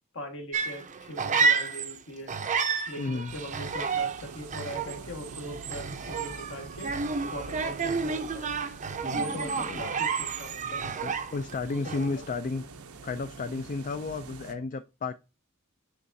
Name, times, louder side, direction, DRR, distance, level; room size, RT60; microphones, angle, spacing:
voice 1, 0.1-2.3 2.9-6.9 7.3-8.5 9.1-10.8 11.7-12.2, left 1 dB, 65° left, 4 dB, 1.5 m, -41 dB
sound 1, 0.5-2.0 2.3-11.6 11.8-12.2, right 5 dB, 35° right, 0.5 m, -30 dB
voice 2, 3.0-3.3 9.0-9.8 11.0-12.6 13.0-15.1, left 3 dB, 40° left, 10 dB, 0.4 m, -33 dB
sound 2, 3.3-14.5, right 4 dB, 90° right, 0.7 m, -45 dB
9.9 x 3.5 x 2.7 m, 0.28 s
head